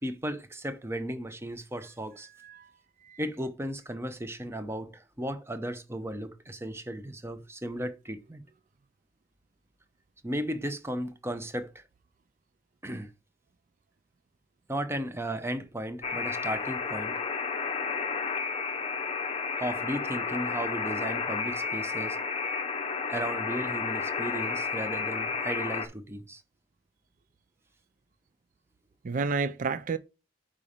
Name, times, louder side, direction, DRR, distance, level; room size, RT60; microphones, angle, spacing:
voice 1, 0.0-2.3 3.2-8.4 10.2-11.8 12.8-13.1 14.7-17.2 19.6-22.2 23.1-26.4, right 1 dB, 15° right, 0.7 m, -35 dB
voice 2, 2.4-2.7 3.0-3.2 29.0-30.0, right 4 dB, 45° right, 0.4 m, -30 dB
Alarm, 16.0-25.9, left 5 dB, 30° left, 0.7 m, -32 dB
5.6 x 4.9 x 5.0 m
head